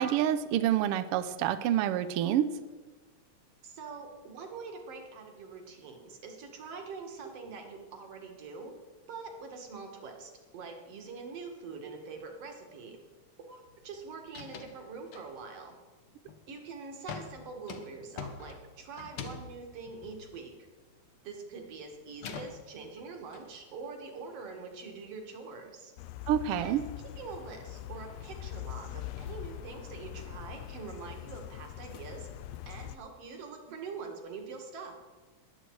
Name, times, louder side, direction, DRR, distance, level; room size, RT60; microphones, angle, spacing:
voice 1, 0.0-2.5 11.8-12.0 26.3-26.8, right 11 dB, 85° right, 11 dB, 1.2 m, -27 dB
voice 2, 3.6-8.7 9.1-13.0 13.5-15.8 16.5-20.5 21.2-25.9 26.6-26.9 27.2-32.3 32.7-35.0, right 4 dB, 60° right, 3 dB, 2.7 m, -44 dB
sound 1, 13.7-14.0 14.2-14.8 15.1-15.6 16.1-16.5 17.1-21.1 21.4-23.4, left 5 dB, 60° left, 1.6 m, -45 dB
sound 2, 26.0-33.0, left 12 dB, 80° left, 1.5 m, -43 dB
20.5 x 8.3 x 4.7 m, 1.3 s
omnidirectional pair, 3.3 m